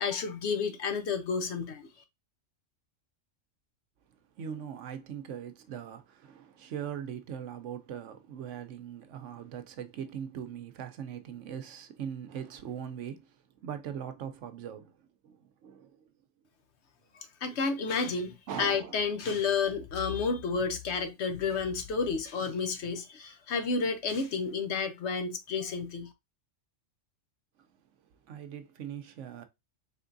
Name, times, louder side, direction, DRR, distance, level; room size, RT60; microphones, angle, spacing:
voice 1, 0.0-1.9 17.1-26.1, left 5 dB, 65° left, 0.9 m, -31 dB
voice 2, 4.4-13.3 13.6-15.0 15.2-16.0 18.5-19.0 28.2-29.5, right 8 dB, 70° right, 0.9 m, -40 dB
4.4 x 3.5 x 2.5 m
omnidirectional pair, 1.3 m